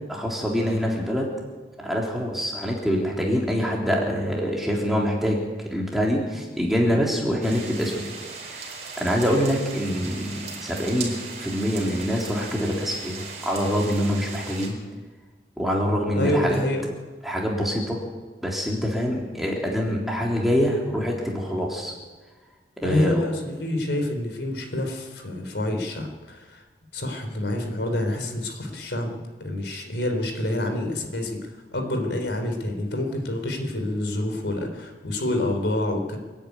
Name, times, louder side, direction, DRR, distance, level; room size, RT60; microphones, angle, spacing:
voice 1, 0.1-1.3 1.8-5.4 5.7-8.0 8.4-14.8 15.6-16.6 17.2-18.0 18.4-21.9 22.8-23.2, equal, ahead, -2 dB, 3.5 m, -25 dB
sound 1, 7.4-14.7, right 4 dB, 40° right, 4.8 m, -38 dB
voice 2, 16.1-16.9 22.8-26.6 26.9-31.4 31.7-36.2, left 1 dB, 85° left, 5 dB, 3.7 m, -27 dB
27.5 x 10.0 x 9.6 m, 1.3 s
head